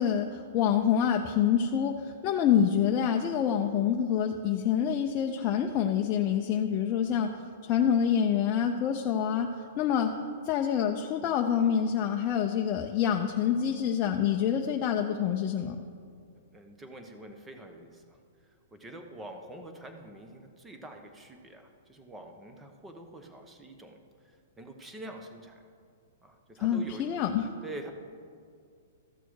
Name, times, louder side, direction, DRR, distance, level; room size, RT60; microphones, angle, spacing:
voice 1, 0.0-7.3 7.6-9.5 9.8-10.2 10.5-15.8 26.6-27.5, left 8 dB, 30° left, 2 dB, 0.5 m, -26 dB
voice 2, 16.5-18.2 18.7-24.0 24.2-25.7 26.2-27.1 27.6-27.9, right 1 dB, 10° right, 5 dB, 0.9 m, -46 dB
13.5 x 6.8 x 4.7 m, 2.2 s
hypercardioid pair, 155°, 0 cm